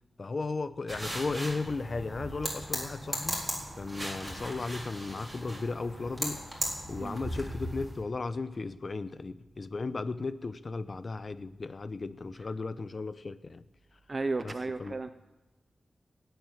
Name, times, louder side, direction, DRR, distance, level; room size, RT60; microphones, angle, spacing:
voice 1, 0.2-3.5 3.8-13.6 14.4-15.1, left 3 dB, 45° left, 13 dB, 0.7 m, -36 dB
sound 1, 0.9-8.0, equal, 5° right, 4.2 m, -37 dB
voice 2, 14.1-15.1, right 3 dB, 35° right, 9 dB, 0.5 m, -34 dB
16.5 x 8.0 x 9.8 m, 1.1 s
wide cardioid pair, 130°, 0 cm